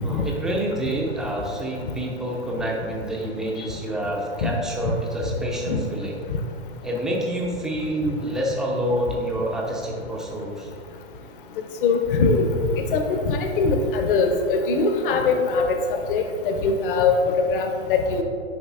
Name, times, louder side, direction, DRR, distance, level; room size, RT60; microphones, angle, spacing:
voice 1, 0.0-6.2 6.8-10.7, right 1 dB, ahead, -2 dB, 0.3 m, -27 dB
voice 2, 11.8-12.5 12.9-18.2, left 4 dB, 50° left, 6 dB, 0.8 m, -22 dB
10.0 x 5.2 x 2.5 m, 2.4 s
figure-of-eight pair, 105°, 35 cm